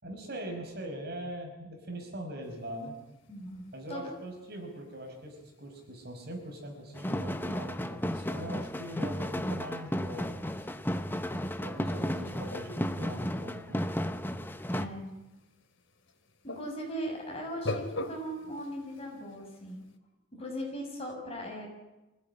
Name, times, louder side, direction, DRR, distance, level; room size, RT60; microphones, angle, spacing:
voice 1, 0.0-3.0 3.7-10.7 11.6-13.8, right 1 dB, 50° right, 3 dB, 5.3 m, -42 dB
sound 1, 2.4-20.0, left 1 dB, 75° left, 2.6 m, -46 dB
voice 2, 3.3-4.1 14.7-15.1 16.4-19.8 20.3-21.7, equal, 30° left, 0 dB, 7.0 m, -39 dB
sound 2, 6.9-14.9, equal, 10° left, 0.9 m, -33 dB
25.0 x 17.0 x 9.9 m, 1.1 s
head